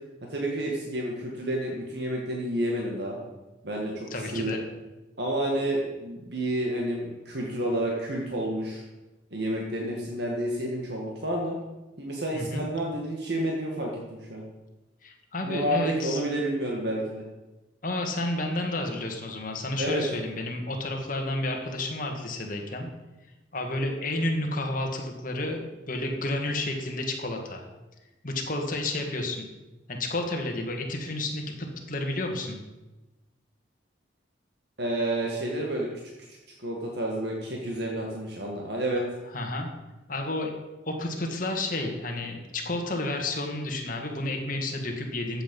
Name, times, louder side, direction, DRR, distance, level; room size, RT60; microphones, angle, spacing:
voice 1, 0.3-3.2 3.6-4.5 5.2-8.8 9.3-11.6 12.0-14.4 15.4-17.2 19.8-20.0 34.8-35.9 36.3-39.0, right 1 dB, 60° right, -1 dB, 1.8 m, -30 dB
voice 2, 4.1-4.6 12.3-12.7 15.0-16.2 17.8-22.9 23.5-27.7 28.2-29.5 29.9-32.6 39.3-39.7 40.1-40.5 40.8-45.4, left 2 dB, 45° left, 2 dB, 1.9 m, -31 dB
14.0 x 7.8 x 5.4 m, 1.1 s
head